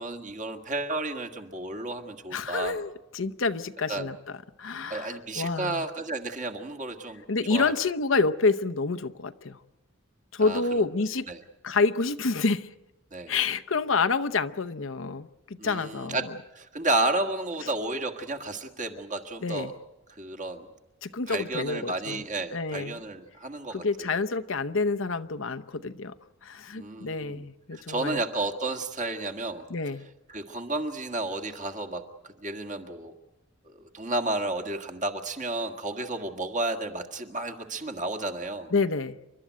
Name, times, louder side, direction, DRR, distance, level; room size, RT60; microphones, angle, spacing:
voice 1, 0.0-2.8 3.9-4.1 4.9-7.2 7.5-7.7 10.4-10.6 11.3-11.4 13.1-13.3 15.6-16.2 16.5-19.7 20.2-20.7 21.3-24.1 26.7-29.6 30.3-32.0 32.4-33.1 33.6-38.7, right 2 dB, 35° right, 1.8 m, -32 dB
voice 2, 2.3-4.2 4.6-5.8 7.3-9.6 10.3-11.3 11.6-12.7 13.3-16.3 19.4-19.7 21.0-22.2 22.5-23.0 23.7-26.1 26.4-28.2 29.7-30.0 38.7-39.2, left 4 dB, 65° left, 0.8 m, -28 dB
29.0 x 12.5 x 9.3 m
head